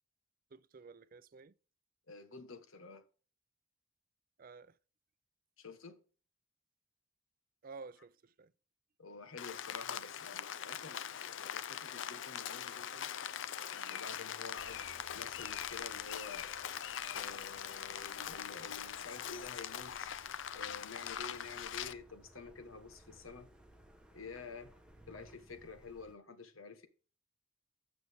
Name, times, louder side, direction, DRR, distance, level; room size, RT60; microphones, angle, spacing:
voice 1, 0.5-1.5 4.4-4.8 7.6-8.5, right 4 dB, 45° right, 0.5 m, -52 dB
voice 2, 2.1-3.0 5.6-6.0 9.0-13.1 13.7-16.5 17.1-20.1 20.5-23.5 24.1-24.7 25.1-26.9, left 4 dB, 85° left, 1.3 m, -50 dB
Rain, 9.4-21.9, left 9 dB, 65° left, 0.5 m, -42 dB
sound 1, 14.6-26.1, right 1 dB, 5° right, 0.9 m, -62 dB
8.9 x 6.8 x 3.5 m
head